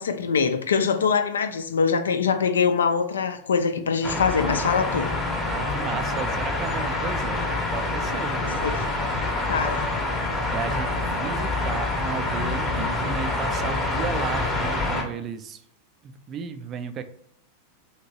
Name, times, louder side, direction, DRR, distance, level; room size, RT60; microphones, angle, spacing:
voice 1, 0.0-5.1 8.4-8.7 9.5-9.9, left 6 dB, 70° left, 8 dB, 0.3 m, -23 dB
sound 1, 4.0-15.0, left 2 dB, 10° left, 0.7 m, -26 dB
voice 2, 5.5-8.7 9.5-9.6 10.3-15.6 16.0-17.0, right 6 dB, 30° right, 10 dB, 0.3 m, -34 dB
2.9 x 2.8 x 2.7 m, 0.68 s
figure-of-eight pair, 90°, 0 cm